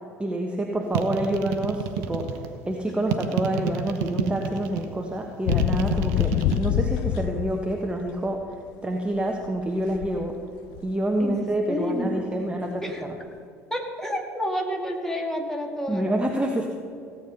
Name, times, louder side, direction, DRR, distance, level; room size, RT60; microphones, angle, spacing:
voice 1, 0.2-8.5 8.8-10.4 10.8-13.2 15.9-16.7, right 1 dB, 10° right, 2 dB, 1.2 m, -27 dB
sound 1, 0.9-2.5 3.1-4.9 5.5-6.6, right 9 dB, 65° right, 1.0 m, -28 dB
sound 2, 5.5-8.1 9.4-9.5 9.9-10.4 10.7-10.9, left 12 dB, 60° left, 0.4 m, -26 dB
voice 2, 11.7-12.4 12.8-13.0 13.7-16.1, equal, 5° left, 1 dB, 2.4 m, -29 dB
16.5 x 8.3 x 5.5 m, 2.4 s
figure-of-eight pair, 65°, 9 cm